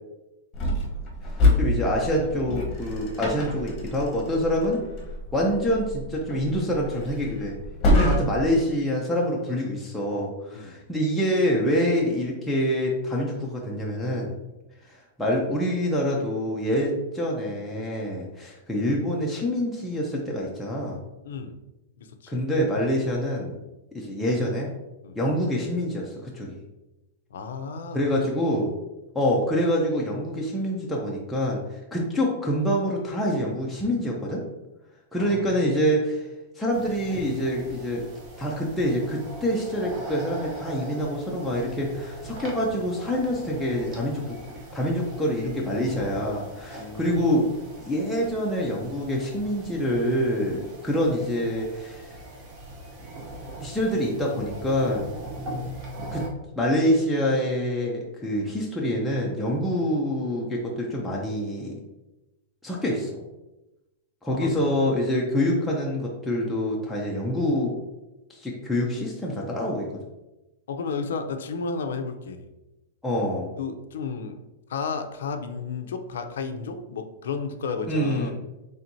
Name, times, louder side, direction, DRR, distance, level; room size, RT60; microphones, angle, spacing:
sound 1, 0.5-8.6, left 1 dB, 25° left, 0.9 m, -27 dB
voice 1, 1.3-4.8 5.3-7.6 7.9-14.3 14.8-21.0 22.3-23.6 23.9-24.7 25.2-26.6 27.9-28.7 29.1-34.4 35.1-36.3 36.6-38.0 38.4-44.4 44.7-47.5 47.8-52.2 53.6-55.1 56.1-56.2 56.6-61.7 62.6-63.2 64.2-67.7 68.3-69.9 73.0-73.5 77.9-78.3, equal, 5° left, -4 dB, 0.5 m, -26 dB
voice 2, 8.0-8.4 10.5-10.8 21.2-21.6 22.0-22.5 25.0-25.2 27.3-28.2 35.2-35.6 46.7-47.4 64.3-64.5 70.7-72.5 73.6-74.4 74.7-78.3, left 5 dB, 85° left, 7 dB, 0.5 m, -33 dB
sound 2, 36.7-56.3, right 1 dB, 30° right, 0.8 m, -40 dB
4.3 x 3.4 x 2.6 m, 1.0 s
supercardioid pair, 170°, 0 cm